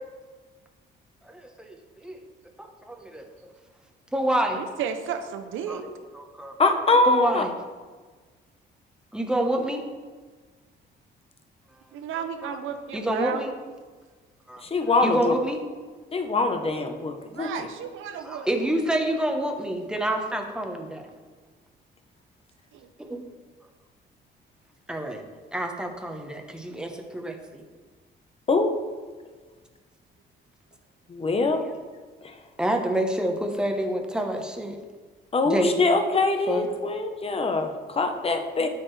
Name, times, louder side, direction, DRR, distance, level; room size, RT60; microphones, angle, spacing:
voice 1, 1.3-2.2 2.6-3.2 4.1-4.6 5.7-5.9 6.1-6.5 7.1-7.5 9.1-9.8 12.4-12.6 12.9-13.5 14.5-14.6 15.0-15.6 18.2-21.0 23.0-23.2 24.9-25.2 25.5-27.6 32.6-34.8 35.4-35.9 36.5-36.7 38.6-38.7, right 1 dB, 5° right, 3 dB, 1.0 m, -28 dB
voice 2, 4.6-5.9 6.9-7.1 11.9-13.4 17.3-18.5 22.7-22.9, right 8 dB, 80° right, 8 dB, 0.7 m, -33 dB
voice 3, 6.6-7.4 14.6-15.3 16.1-17.7 28.5-28.7 31.1-31.6 32.2-32.3 35.3-38.7, left 3 dB, 30° left, 6 dB, 0.9 m, -23 dB
12.0 x 4.4 x 3.3 m, 1.4 s
cardioid pair, 90°, 20 cm